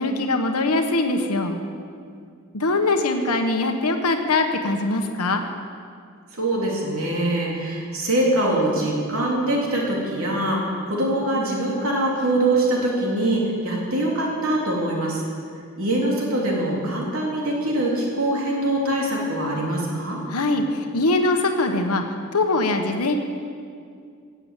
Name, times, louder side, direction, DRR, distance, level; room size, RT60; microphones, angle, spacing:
voice 1, 0.0-1.6 2.5-5.4 20.3-22.0 22.3-23.2, left 2 dB, 90° left, 5 dB, 1.2 m, -22 dB
voice 2, 6.3-15.2 15.8-20.2, right 1 dB, 70° right, -3 dB, 3.4 m, -23 dB
17.0 x 8.0 x 8.2 m, 2.2 s
head